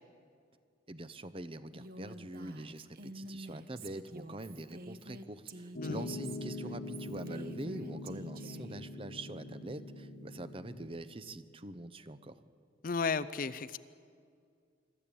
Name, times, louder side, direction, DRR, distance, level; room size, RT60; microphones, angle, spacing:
voice 1, 0.9-12.4, right 2 dB, 30° right, 12 dB, 0.7 m, -44 dB
Female speech woman speaking, 1.7-8.8, right 1 dB, 55° right, 1.1 m, -48 dB
Piano, 5.7-10.8, left 2 dB, 65° left, 1.6 m, -43 dB
voice 2, 12.8-13.8, left 5 dB, 50° left, 14 dB, 0.5 m, -33 dB
24.5 x 13.0 x 8.6 m, 2.2 s
head